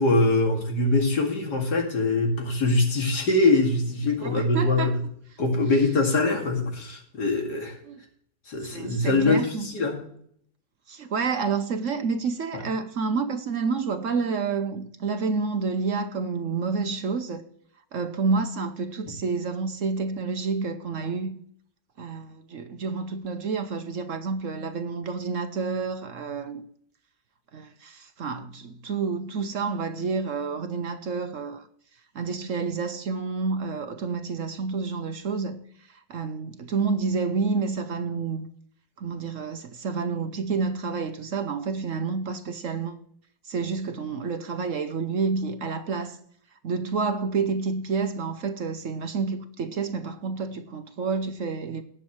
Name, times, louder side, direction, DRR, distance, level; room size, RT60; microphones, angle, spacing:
voice 1, 0.0-5.0 5.4-7.8 8.5-10.0 12.5-12.6, left 2 dB, 75° left, 2.8 m, -23 dB
voice 2, 4.2-4.9 7.9-8.0 8.6-9.7 10.9-17.4 17.9-21.4 22.0-26.6 27.5-31.7 32.1-35.6 35.9-38.5 39.0-43.0 43.4-46.2 46.6-51.8, right 4 dB, 55° right, 1.0 m, -29 dB
18.5 x 7.4 x 3.1 m
omnidirectional pair, 1.8 m